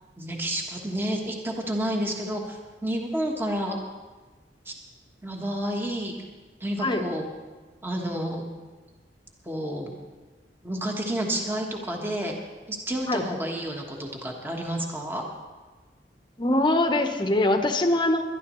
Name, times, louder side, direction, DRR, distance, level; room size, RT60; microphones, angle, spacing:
voice 1, 0.2-3.8 4.6-4.7 5.2-6.1 6.6-7.2 7.8-8.4 9.4-9.9 10.6-12.3 12.7-15.2, right 1 dB, 15° right, 0 dB, 1.3 m, -30 dB
voice 2, 16.4-18.2, left 1 dB, 25° left, 6 dB, 1.0 m, -23 dB
21.5 x 11.5 x 3.1 m, 1.3 s
head